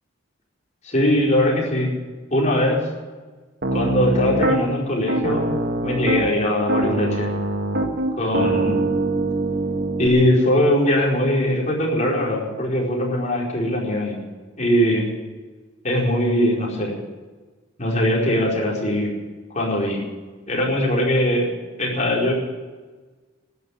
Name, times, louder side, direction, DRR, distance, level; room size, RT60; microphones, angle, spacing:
voice 1, 0.8-1.9 2.3-2.8 3.7-5.5 5.8-7.3 8.2-8.8 10.0-14.2 14.6-15.1 15.8-16.9 17.8-19.1 19.5-20.0 20.5-21.4 21.8-22.3, left 1 dB, 40° left, -2 dB, 4.8 m, -21 dB
Piano, 3.6-4.6 5.1-6.3 6.7-10.1, right 2 dB, 60° right, 1.7 m, -23 dB
13.5 x 10.5 x 9.9 m, 1.3 s
head